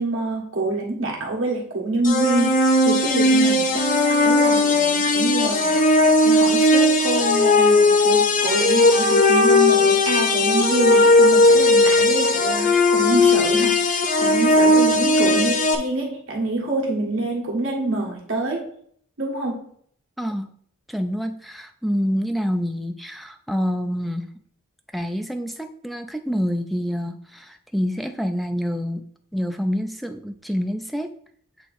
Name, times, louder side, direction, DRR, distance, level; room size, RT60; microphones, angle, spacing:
voice 1, 0.0-5.8 6.2-18.7 19.2-19.7, right 2 dB, 70° right, -1 dB, 1.5 m, -26 dB
sound 1, 2.0-15.8, left 2 dB, 40° left, 0.6 m, -17 dB
voice 2, 20.2-20.5 20.9-24.3 24.9-29.0 29.3-31.1, equal, ahead, 6 dB, 0.3 m, -27 dB
8.1 x 2.8 x 4.1 m, 0.63 s
head